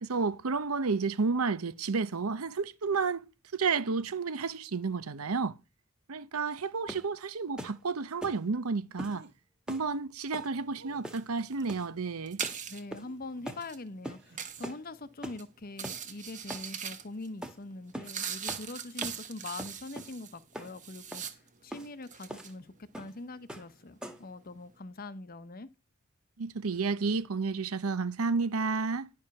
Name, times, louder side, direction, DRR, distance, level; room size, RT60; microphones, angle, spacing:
voice 1, 0.0-3.3 3.5-5.6 6.1-9.3 9.7-12.4 26.4-29.1, right 4 dB, 85° right, 0.8 m, -31 dB
sound 1, 6.9-7.1 7.6-7.8 8.2-8.4 9.0-9.2 9.7-9.9 10.3-10.5 11.0-11.3 11.7-11.9 12.4-12.6 12.9-13.2 13.5-13.6 14.0-14.2 14.6-14.8 15.2-15.4 15.8-16.0 16.5-16.7 17.4-17.6 17.9-18.1 18.5-18.7 19.0-19.2 19.6-20.1 20.5-20.7 21.1-21.3 21.7-21.9 22.3-22.5 22.9-23.2 23.5-23.7 24.0-24.3, right 1 dB, 5° right, 1.3 m, -42 dB
sound 2, 9.1-9.4 10.7-11.9 12.6-13.6 14.2-14.7, right 3 dB, 55° right, 1.4 m, -56 dB
sound 3, 10.6-10.9 11.1-12.9 13.5-13.8 14.4-14.7 15.3-15.4 15.7-17.3 17.6-21.6 21.9-22.5, right 8 dB, 35° right, 1.2 m, -40 dB
voice 2, 12.7-21.2 21.6-25.7, left 2 dB, 45° left, 0.8 m, -43 dB
10.5 x 4.7 x 5.9 m
head